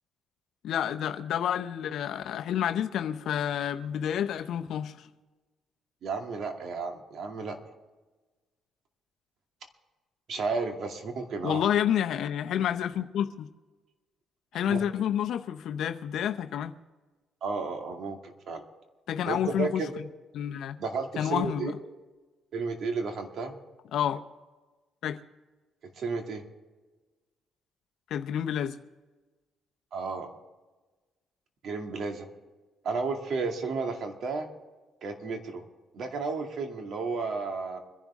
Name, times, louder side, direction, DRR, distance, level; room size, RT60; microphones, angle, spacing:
voice 1, 0.6-5.1 11.4-13.5 14.5-16.7 19.1-19.8 20.3-20.8 21.2-21.7 23.9-24.2 25.0-25.2 28.1-28.8, left 9 dB, 75° left, 0.7 m, -29 dB
voice 2, 6.0-7.6 10.3-11.6 14.7-14.8 17.4-18.6 19.3-19.9 20.8-21.7 22.5-23.5 26.0-26.4 29.9-30.3 31.6-32.3 32.8-34.5 35.0-35.6 35.9-37.8, right 4 dB, 65° right, 2.4 m, -32 dB
24.5 x 11.0 x 3.6 m
cardioid pair, 90°, 0 cm